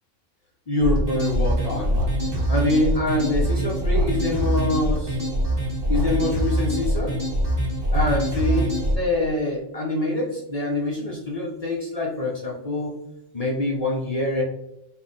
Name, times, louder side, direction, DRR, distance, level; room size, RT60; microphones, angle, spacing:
voice 1, 0.7-2.0 2.5-5.2 5.9-7.2 7.9-12.9 13.3-14.4, left 2 dB, 50° left, -3 dB, 0.4 m, -25 dB
sound 1, 0.8-9.0, right 1 dB, 20° right, 1.1 m, -23 dB
3.7 x 2.3 x 3.8 m, 0.88 s
omnidirectional pair, 1.3 m